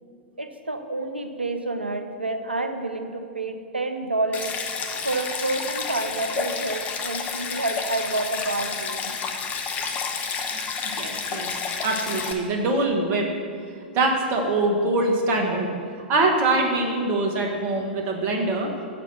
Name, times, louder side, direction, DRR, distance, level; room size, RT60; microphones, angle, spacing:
voice 1, 0.4-4.6 5.0-9.1, right 2 dB, 90° right, 7 dB, 0.7 m, -29 dB
Stream, 4.3-12.3, left 5 dB, 25° left, 0.9 m, -30 dB
voice 2, 10.9-13.5 13.9-15.7 16.1-18.7, right 2 dB, 40° right, 2 dB, 1.4 m, -24 dB
7.7 x 6.0 x 6.1 m, 2.3 s
figure-of-eight pair, 100°, 6 cm